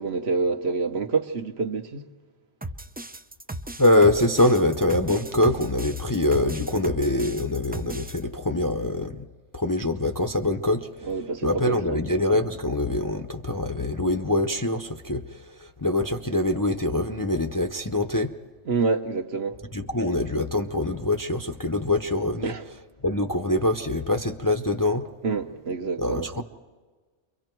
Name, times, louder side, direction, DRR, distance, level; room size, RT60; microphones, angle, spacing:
voice 1, 0.0-2.1 11.0-12.1 18.7-19.6 22.4-22.6 25.2-26.3, right 4 dB, 65° right, 1.4 m, -27 dB
sound 1, 2.6-8.2, right 1 dB, 15° right, 0.3 m, -37 dB
voice 2, 3.8-9.2 9.5-11.1 11.4-18.3 19.7-22.5 23.0-25.0 26.0-26.4, left 1 dB, 20° left, 0.7 m, -24 dB
29.0 x 24.0 x 4.6 m
omnidirectional pair, 1.2 m